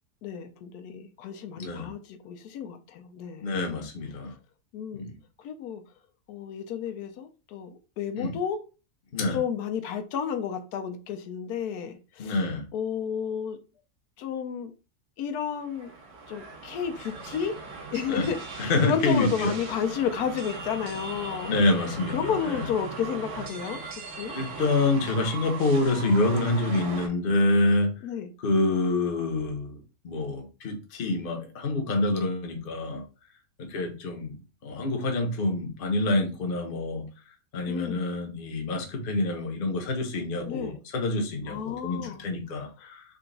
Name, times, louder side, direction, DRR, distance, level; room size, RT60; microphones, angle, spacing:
voice 1, 0.2-3.6 4.7-5.1 5.4-5.8 6.3-8.6 9.3-13.6 14.2-14.7 15.2-15.9 16.3-17.6 17.9-21.5 22.1-23.8 24.1-24.3 28.0-28.3 37.7-38.1 40.5-40.8 41.5-42.2, left 8 dB, 80° left, 1.1 m, -32 dB
voice 2, 1.6-1.9 3.4-4.3 4.9-5.1 8.2-8.3 9.1-9.4 12.2-12.7 18.1-18.3 18.6-19.5 21.5-22.7 24.3-27.9 28.4-33.0 33.6-34.4 34.6-37.0 37.5-43.0, left 2 dB, 45° left, 0.8 m, -27 dB
sound 1, 15.6-27.1, right 4 dB, 80° right, 1.4 m, -39 dB
3.9 x 2.2 x 3.8 m
omnidirectional pair, 1.6 m